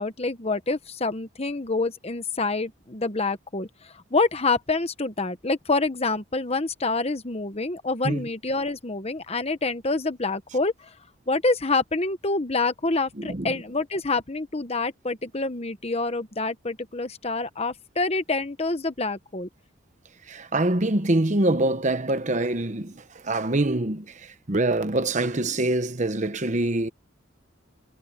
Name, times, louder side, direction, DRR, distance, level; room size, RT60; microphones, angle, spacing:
voice 1, 0.0-10.9 11.3-19.5, left 3 dB, 30° left, 1.1 m, -27 dB
voice 2, 13.2-13.5 20.3-26.9, right 2 dB, 35° right, 1.0 m, -25 dB
head